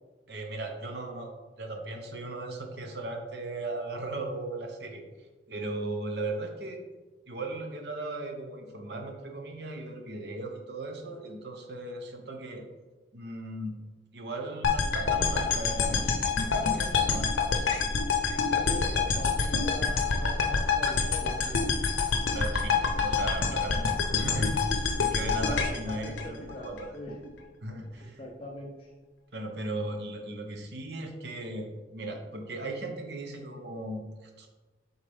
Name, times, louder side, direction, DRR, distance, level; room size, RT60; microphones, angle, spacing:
voice 1, 0.3-5.0 5.5-6.8 7.3-12.6 13.1-13.8 14.1-17.3 22.3-24.7 25.0-26.9 27.6-28.2 29.3-34.5, right 2 dB, 60° right, 3 dB, 0.9 m, -37 dB
sound 1, 14.6-26.8, left 5 dB, 85° left, 0.7 m, -27 dB
voice 2, 18.5-21.7 25.4-26.7 26.9-27.3 28.2-28.9, equal, 30° left, -3 dB, 0.8 m, -42 dB
6.9 x 4.0 x 3.6 m, 1.3 s
head